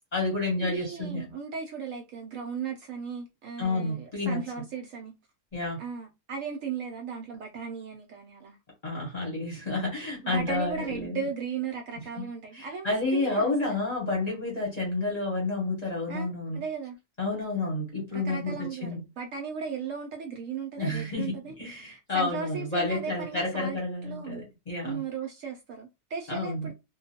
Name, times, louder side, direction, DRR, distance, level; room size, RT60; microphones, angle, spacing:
voice 1, 0.1-1.2 3.6-4.4 5.5-5.8 8.8-11.2 12.5-16.6 17.2-19.0 20.8-25.0 26.3-26.7, left 2 dB, 30° left, 0.8 m, -30 dB
voice 2, 0.6-5.1 5.8-8.6 10.2-13.8 16.1-17.0 18.1-18.9 19.2-23.8 24.0-24.4 24.8-26.7, right 6 dB, 70° right, 0.8 m, -36 dB
2.4 x 2.2 x 2.7 m
omnidirectional pair, 1.7 m